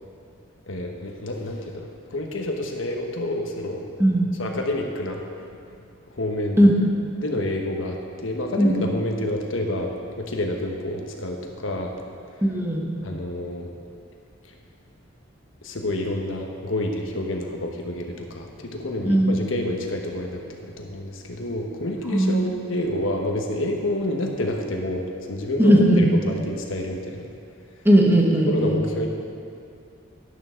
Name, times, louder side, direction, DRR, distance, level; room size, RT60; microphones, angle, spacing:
voice 1, 0.7-3.9 4.4-5.2 6.1-6.6 7.2-11.9 13.0-13.7 15.6-27.3 28.5-29.1, left 1 dB, 75° left, 2 dB, 1.2 m, -28 dB
voice 2, 4.0-4.3 6.6-6.9 8.6-8.8 12.4-13.0 19.1-19.4 22.1-22.3 25.6-26.1 27.8-28.8, right 1 dB, 10° right, -1 dB, 1.2 m, -18 dB
11.5 x 11.0 x 3.8 m, 2.4 s
head